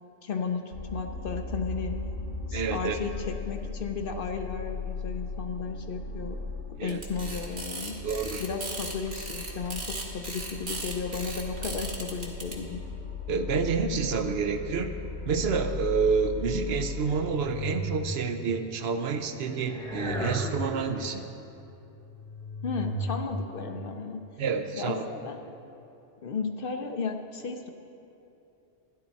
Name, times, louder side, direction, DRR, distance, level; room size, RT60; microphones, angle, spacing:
voice 1, 0.2-2.0 2.5-6.4 6.8-8.0 8.4-12.8 22.6-24.2 24.7-25.4 26.2-27.7, left 5 dB, 55° left, 5 dB, 0.7 m, -34 dB
sound 1, 0.7-17.3, left 3 dB, 75° left, 1.9 m, -37 dB
voice 2, 2.5-3.0 6.8-7.0 8.0-8.4 13.3-15.0 15.3-21.2 24.4-25.1, right 5 dB, 65° right, 7 dB, 0.8 m, -28 dB
sound 2, 6.9-12.5, right 2 dB, 45° right, 1.3 m, -37 dB
sound 3, 17.1-18.5 19.3-21.1 21.8-23.2, equal, 5° left, 1.1 m, -35 dB
12.5 x 10.5 x 4.1 m, 2.8 s
omnidirectional pair, 1.2 m